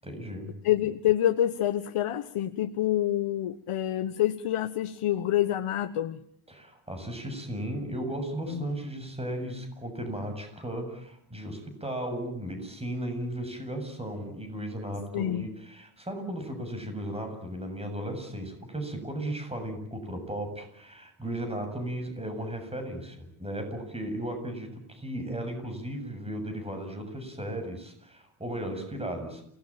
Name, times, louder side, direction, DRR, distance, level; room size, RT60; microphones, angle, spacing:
voice 1, 0.0-0.5 6.5-29.4, right 1 dB, 10° right, 6 dB, 7.7 m, -35 dB
voice 2, 0.6-6.2 8.5-8.6 15.1-15.5, left 12 dB, 85° left, 8 dB, 1.5 m, -27 dB
28.5 x 19.5 x 9.0 m, 0.71 s
wide cardioid pair, 135°, 49 cm